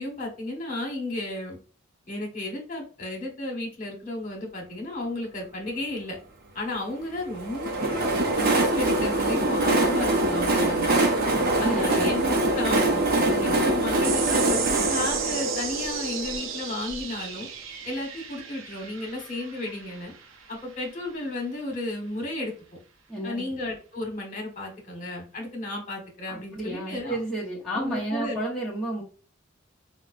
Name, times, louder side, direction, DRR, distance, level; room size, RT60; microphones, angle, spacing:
voice 1, 0.0-1.6 2.1-6.2 6.5-11.1 11.6-17.5 17.8-20.1 20.5-22.5 23.2-27.2 27.7-28.4, left 2 dB, 40° left, 1 dB, 1.3 m, -33 dB
Train, 7.3-17.0, right 2 dB, 50° right, 0.7 m, -24 dB
voice 2, 11.4-12.1 13.3-13.7 23.1-23.5 26.3-29.0, right 1 dB, ahead, -8 dB, 0.9 m, -32 dB
sound 1, 14.0-20.8, right 7 dB, 90° right, 0.6 m, -34 dB
5.2 x 2.2 x 2.4 m, 0.40 s
head